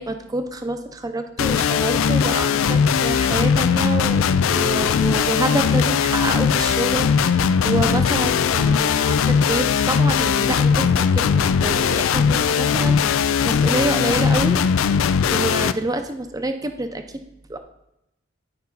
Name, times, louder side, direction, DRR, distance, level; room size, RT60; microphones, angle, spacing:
voice 1, 0.0-14.6 15.3-17.0 17.5-17.6, right 2 dB, 20° right, 7 dB, 0.6 m, -27 dB
sound 1, 1.4-15.7, left 6 dB, 90° left, 0.4 m, -19 dB
10.5 x 5.4 x 4.0 m, 0.83 s
head